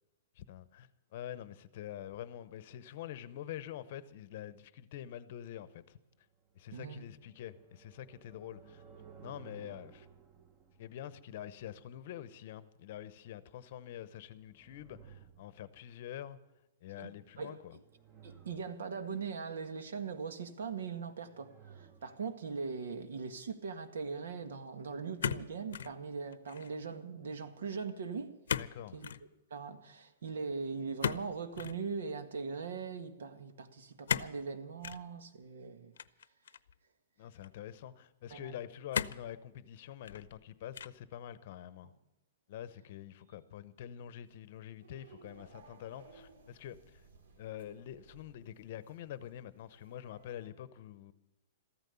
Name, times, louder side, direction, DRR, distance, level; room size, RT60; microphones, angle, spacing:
voice 1, 0.4-6.0 6.5-8.8 9.2-10.1 10.8-16.4 16.8-17.8 28.6-29.0 37.2-41.9 42.5-47.0 47.4-51.1, left 11 dB, 35° left, 0.8 m, -46 dB
sound 1, 6.4-12.1 14.1-16.0 17.5-19.1 20.9-22.2, right 7 dB, 20° right, 0.9 m, -58 dB
voice 2, 6.7-7.0 17.0-17.6 18.2-28.4 28.9-29.1 29.5-35.9 38.3-38.6, right 5 dB, 80° right, 1.9 m, -40 dB
sound 2, 25.2-26.0 26.3-26.7 28.5-28.7 29.0-29.2 31.0-31.8 34.1-34.4 34.8-35.0 36.0-36.7 37.4-37.5 38.9-39.3 39.9-40.4 40.7-41.1, left 8 dB, 80° left, 0.7 m, -36 dB
sound 3, 44.2-50.5, right 3 dB, 65° right, 3.4 m, -60 dB
14.5 x 13.5 x 6.9 m
hypercardioid pair, 180°, 0 cm